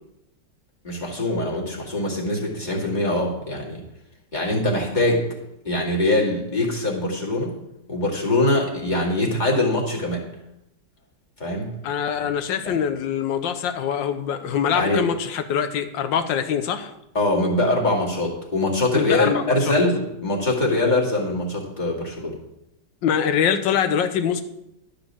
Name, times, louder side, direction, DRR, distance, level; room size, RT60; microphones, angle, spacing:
voice 1, 0.8-3.8 4.3-5.3 5.6-7.6 7.9-10.3 11.4-11.7 12.1-12.3 12.6-12.7 14.7-15.1 17.1-22.4, left 2 dB, 25° left, -3 dB, 2.3 m, -23 dB
voice 2, 11.8-16.9 18.9-19.8 23.0-24.4, left 8 dB, 90° left, 9 dB, 1.6 m, -24 dB
12.0 x 5.0 x 7.3 m, 0.85 s
omnidirectional pair, 1.9 m